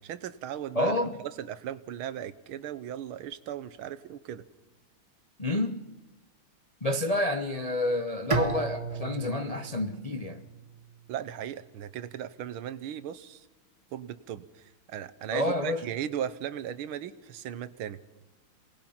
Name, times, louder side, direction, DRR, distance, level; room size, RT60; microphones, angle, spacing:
voice 1, 0.0-4.4 11.1-13.5 13.9-18.2, right 10 dB, 75° right, 1.7 m, -37 dB
voice 2, 0.7-1.1 5.4-5.8 6.8-10.4 15.3-15.8, left 1 dB, 50° left, 0.4 m, -29 dB
Bowed string instrument, 8.3-11.3, right 4 dB, 20° right, 0.9 m, -34 dB
27.0 x 19.0 x 5.7 m
omnidirectional pair, 2.4 m